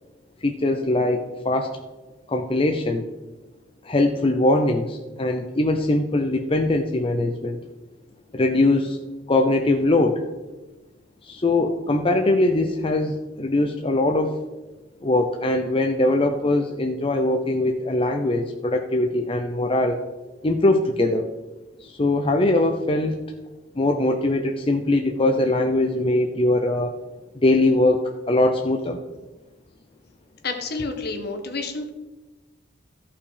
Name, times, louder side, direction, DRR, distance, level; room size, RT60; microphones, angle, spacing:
voice 1, 0.4-1.8 2.3-3.1 3.8-7.6 8.3-9.0 9.3-10.2 11.2-14.4 15.0-20.0 20.4-21.3 21.8-23.2 23.8-26.9 27.4-29.0, left 2 dB, 30° left, 3 dB, 0.7 m, -21 dB
voice 2, 30.4-31.9, left 3 dB, 55° left, 5 dB, 1.5 m, -29 dB
14.0 x 5.7 x 5.0 m, 1.2 s
head